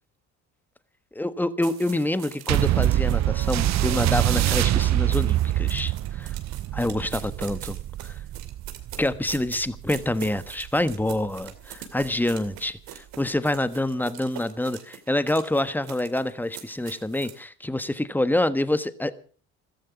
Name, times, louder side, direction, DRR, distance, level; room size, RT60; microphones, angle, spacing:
voice 1, 1.1-6.3 6.7-8.1 9.0-19.2, left 1 dB, 5° left, 13 dB, 1.3 m, -27 dB
sound 1, 1.6-17.4, right 11 dB, 75° right, 2.5 m, -44 dB
sound 2, 2.5-11.3 12.0-12.1, right 13 dB, 50° right, 0.7 m, -25 dB
15.0 x 14.0 x 6.0 m, 0.42 s
supercardioid pair, 70°, 36 cm